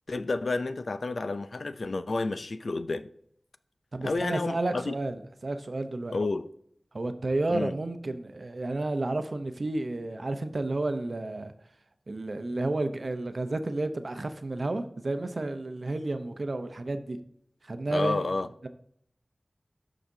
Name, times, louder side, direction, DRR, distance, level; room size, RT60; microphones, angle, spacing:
voice 1, 0.1-3.1 4.0-4.9 6.1-6.5 7.5-7.7 17.9-18.5, left 3 dB, 70° left, 0.4 m, -30 dB
voice 2, 3.9-6.2 6.9-11.5 12.1-17.2 17.6-18.3, right 2 dB, 60° right, 0.7 m, -31 dB
13.0 x 5.0 x 2.7 m
wide cardioid pair, 70°, 0 cm